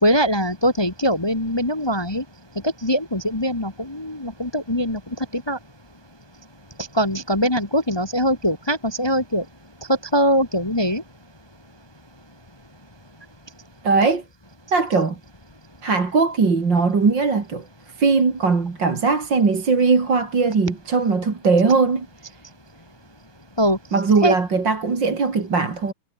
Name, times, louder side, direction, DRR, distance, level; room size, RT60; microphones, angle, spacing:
voice 1, 0.0-2.2 2.6-5.0 5.3-5.6 6.9-9.4 9.9-11.0 23.6-23.8 24.2-24.3, equal, 15° left, 1.6 m, -22 dB
voice 2, 13.8-14.2 14.7-15.2 15.8-17.6 18.0-22.1 23.9-25.9, right 4 dB, 55° right, 3.8 m, -19 dB
omnidirectional pair, 2.3 m